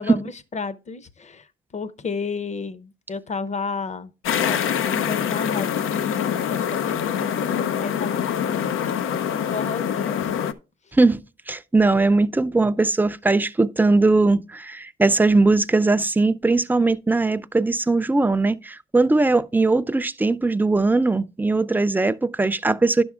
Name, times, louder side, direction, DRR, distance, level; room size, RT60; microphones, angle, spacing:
voice 1, 0.0-8.8 9.3-10.4, left 4 dB, 35° left, 0.8 m, -32 dB
sound 1, 4.2-10.5, left 8 dB, 90° left, 0.7 m, -25 dB
voice 2, 11.5-23.0, right 3 dB, 10° right, 0.4 m, -20 dB
10.5 x 6.1 x 3.6 m
cardioid pair, 105°, 20 cm